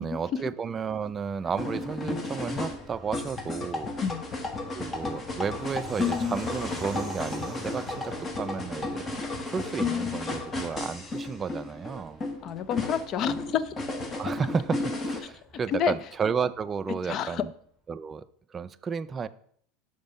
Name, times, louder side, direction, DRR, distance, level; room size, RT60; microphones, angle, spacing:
voice 1, 0.0-3.9 4.7-9.2 9.5-12.2 14.2-17.5 17.9-18.2 18.5-19.3, right 6 dB, 25° right, 12 dB, 0.3 m, -32 dB
Fixed-wing aircraft airplane, 0.8-16.9, right 1 dB, 5° left, 1.9 m, -47 dB
sound 1, 1.6-15.2, left 3 dB, 25° left, 1.0 m, -33 dB
voice 2, 12.4-13.7 15.7-15.9 17.1-17.4, left 8 dB, 40° left, 16 dB, 0.5 m, -28 dB
5.3 x 5.1 x 5.4 m, 0.62 s
supercardioid pair, 120°, 0 cm